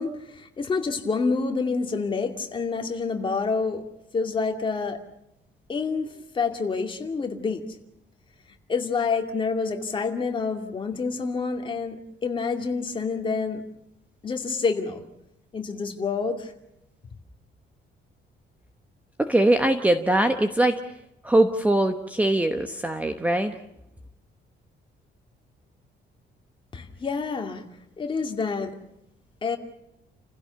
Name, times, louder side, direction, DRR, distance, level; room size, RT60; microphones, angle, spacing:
voice 1, 0.0-3.8 4.1-5.0 5.7-7.6 8.7-13.6 14.2-15.0 15.5-16.5 26.7-27.6 28.0-28.7 29.4-29.6, left 4 dB, 25° left, 4 dB, 2.4 m, -28 dB
voice 2, 19.2-20.8 21.2-23.6, right 1 dB, 10° right, 7 dB, 1.0 m, -22 dB
30.0 x 16.0 x 6.9 m, 0.83 s
cardioid pair, 165°, 19 cm